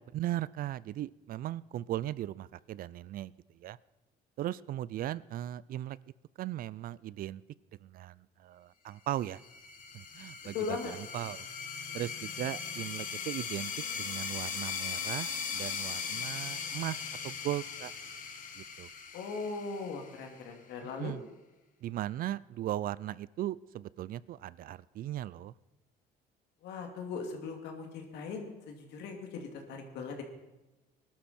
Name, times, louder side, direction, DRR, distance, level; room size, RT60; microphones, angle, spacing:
voice 1, 0.1-3.8 4.4-6.0 6.4-7.4 7.8-9.4 9.9-10.8 11.1-11.5 11.9-17.9 18.6-18.9 21.0-21.2 21.8-25.5, right 13 dB, 60° right, 21 dB, 0.4 m, -38 dB
sound 1, 9.3-20.5, left 6 dB, 50° left, 1.6 m, -39 dB
voice 2, 10.5-10.9 19.1-21.1 26.6-30.2, left 5 dB, 85° left, 3 dB, 2.6 m, -39 dB
20.5 x 12.0 x 4.4 m, 1.0 s
cardioid pair, 110°, 17 cm